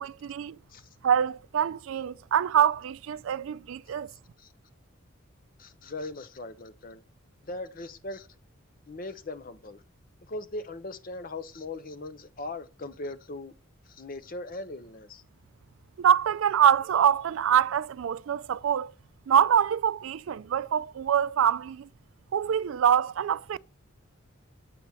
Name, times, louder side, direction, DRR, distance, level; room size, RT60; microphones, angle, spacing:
voice 1, 0.0-0.6 1.0-4.1 16.0-18.9 19.3-21.9 22.3-23.6, right 8 dB, 70° right, 0.3 m, -25 dB
voice 2, 4.1-4.5 5.6-7.0 7.4-8.3 8.9-9.8 10.3-13.5 13.9-15.2, left 2 dB, 40° left, 0.7 m, -39 dB
8.4 x 4.0 x 7.1 m
head